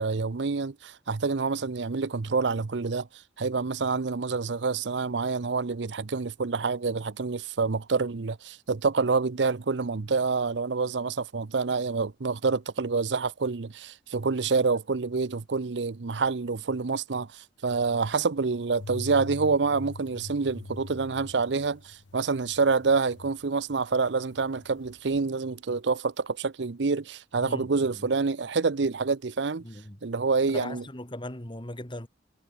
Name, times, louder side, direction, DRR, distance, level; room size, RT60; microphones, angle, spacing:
voice 1, 0.0-3.1 3.4-29.6 30.0-30.8, right 4 dB, 75° right, 0.7 m, -27 dB
sound 1, 18.8-23.8 24.1-25.2, left 2 dB, 90° left, 0.9 m, -43 dB
voice 2, 29.6-30.0 30.5-32.1, left 1 dB, 25° left, 3.0 m, -38 dB
head